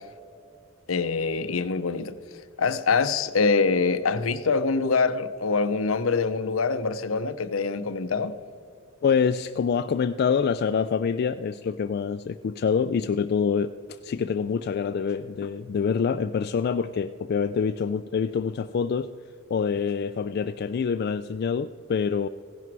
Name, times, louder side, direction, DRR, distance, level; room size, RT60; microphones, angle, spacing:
voice 1, 0.9-2.1 2.6-8.3, left 4 dB, 85° left, 0.7 m, -24 dB
voice 2, 9.0-13.7 14.0-19.1 19.5-22.3, left 6 dB, 50° left, 0.3 m, -26 dB
16.0 x 11.0 x 4.7 m
head